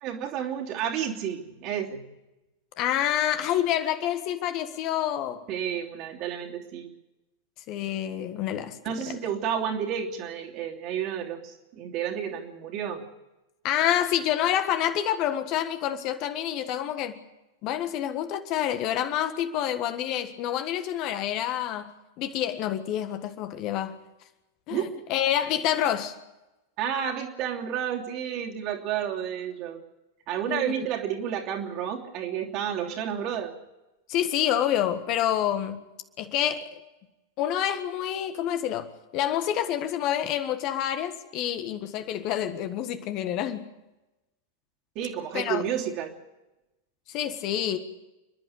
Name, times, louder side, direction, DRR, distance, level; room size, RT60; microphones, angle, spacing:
voice 1, 0.0-2.0 5.5-6.9 8.8-13.0 24.7-24.8 26.8-29.8 30.3-33.5 44.9-46.1, right 9 dB, 40° right, 3.0 m, -31 dB
voice 2, 2.8-5.4 7.7-8.8 13.6-17.2 17.6-21.9 22.2-24.0 24.7-26.2 30.5-30.7 34.1-35.8 36.2-36.8 37.4-43.7 45.3-45.6 47.1-47.8, left 11 dB, 40° left, 1.5 m, -28 dB
29.5 x 11.5 x 8.3 m
figure-of-eight pair, 90°, 0 cm